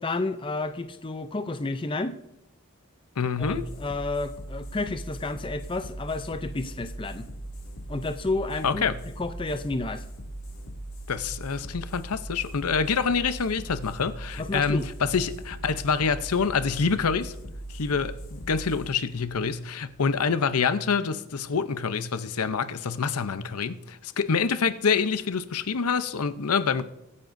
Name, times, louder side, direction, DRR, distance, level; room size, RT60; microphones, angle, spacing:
voice 1, 0.0-2.2 3.4-7.3 7.9-10.0 14.4-14.9, left 2 dB, 25° left, 0.5 m, -31 dB
voice 2, 3.2-3.6 8.6-9.0 11.1-17.3 17.7-26.8, left 5 dB, 90° left, 0.7 m, -26 dB
sound 1, 3.4-20.5, right 1 dB, 70° left, 2.4 m, -40 dB
23.5 x 9.6 x 2.6 m
head